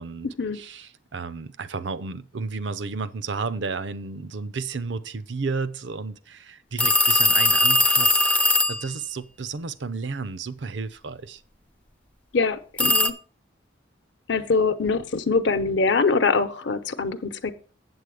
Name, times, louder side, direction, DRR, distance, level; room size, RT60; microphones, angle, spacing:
voice 1, 0.5-11.4, right 4 dB, 65° right, 0.6 m, -32 dB
sound 1, 6.8-8.9 12.8-13.1, left 1 dB, 5° left, 0.4 m, -19 dB
voice 2, 12.3-13.1 14.3-17.5, left 4 dB, 65° left, 0.8 m, -23 dB
8.0 x 7.6 x 4.9 m
head